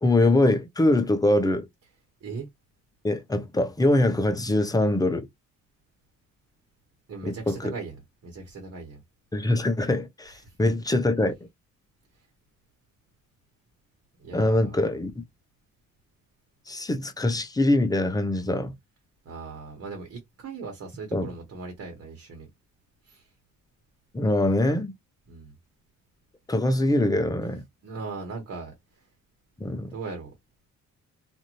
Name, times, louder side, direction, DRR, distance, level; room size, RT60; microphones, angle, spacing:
voice 1, 0.0-1.7 3.0-5.3 7.2-7.7 9.3-11.3 14.3-15.1 16.7-18.7 21.1-21.3 24.1-24.9 26.5-27.6 29.6-29.9, left 1 dB, 10° left, 0.7 m, -23 dB
voice 2, 7.1-8.0 8.2-9.0 10.4-10.5 14.2-14.7 19.2-22.5 23.0-23.3 25.3-25.5 27.8-29.1 29.9-30.3, right 4 dB, 55° right, 1.4 m, -38 dB
2.6 x 2.5 x 3.0 m
cardioid pair, 90°, 30 cm